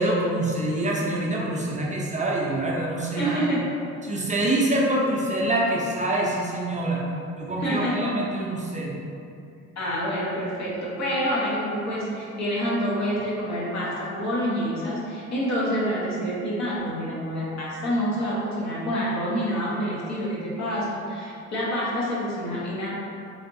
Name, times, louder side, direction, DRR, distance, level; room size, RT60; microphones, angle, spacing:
voice 1, 0.0-3.5 4.0-7.0 7.4-8.9, right 1 dB, 25° right, -4 dB, 0.5 m, -25 dB
voice 2, 3.2-3.7 7.6-8.2 9.8-22.9, equal, 65° left, -6 dB, 1.0 m, -27 dB
3.3 x 2.9 x 2.6 m, 2.5 s
cardioid pair, 90°, 30 cm